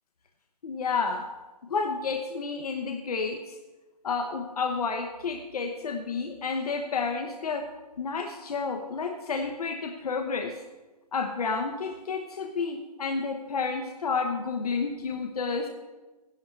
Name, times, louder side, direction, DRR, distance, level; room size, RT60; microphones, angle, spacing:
voice 1, 0.6-1.3 1.7-3.6 4.0-7.7 8.0-10.6 11.1-15.7, left 4 dB, 65° left, 4 dB, 1.0 m, -30 dB
13.0 x 11.0 x 3.3 m, 1.2 s
hypercardioid pair, 170°, 21 cm